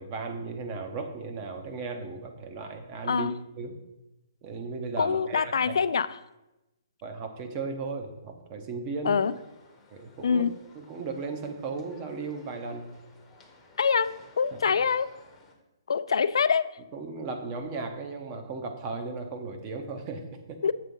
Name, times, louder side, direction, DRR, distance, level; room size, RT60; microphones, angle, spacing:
voice 1, 0.0-3.7 4.4-5.8 7.0-9.2 9.9-10.4 10.7-12.9 16.9-20.6, right 4 dB, 25° right, 5 dB, 0.7 m, -36 dB
voice 2, 5.0-6.1 9.0-9.3 10.2-10.5 13.8-14.1 14.4-15.1 15.9-16.7 20.6-20.7, left 6 dB, 80° left, 15 dB, 0.3 m, -24 dB
sound 1, 9.2-15.5, left 3 dB, 10° left, 0.8 m, -56 dB
7.4 x 3.7 x 5.3 m, 0.97 s
hypercardioid pair, 165°, 3 cm